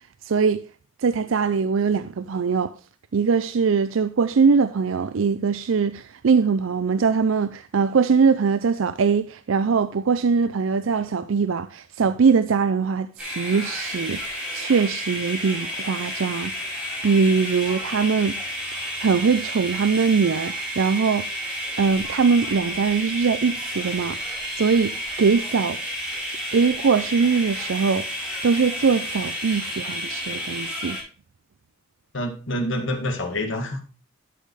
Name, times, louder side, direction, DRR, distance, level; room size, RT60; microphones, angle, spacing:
voice 1, 0.2-0.6 1.0-2.7 3.1-18.4 19.0-21.3 21.8-24.2 24.6-25.8 26.5-28.1 28.4-31.0, right 5 dB, 75° right, 0.5 m, -22 dB
sound 1, 13.2-31.0, equal, 5° right, 5.7 m, -31 dB
voice 2, 32.1-33.8, left 1 dB, 65° left, 2.1 m, -27 dB
12.0 x 7.6 x 3.2 m
head